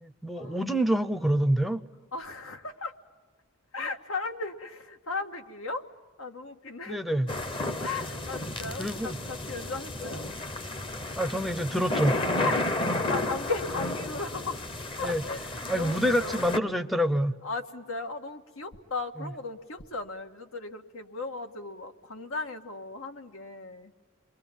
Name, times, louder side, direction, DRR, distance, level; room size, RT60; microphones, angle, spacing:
voice 1, 0.0-1.8 6.9-7.3 8.8-9.2 11.2-12.2 15.0-15.2 15.7-17.4, equal, ahead, 9 dB, 0.7 m, -26 dB
voice 2, 2.1-2.9 3.7-5.9 6.2-7.0 7.8-10.2 12.4-14.6 15.0-16.5 17.4-23.9, left 3 dB, 75° left, 6 dB, 1.7 m, -36 dB
sound 1, 7.3-16.6, left 2 dB, 25° left, 1.0 m, -32 dB
29.0 x 23.0 x 7.3 m, 1.4 s
head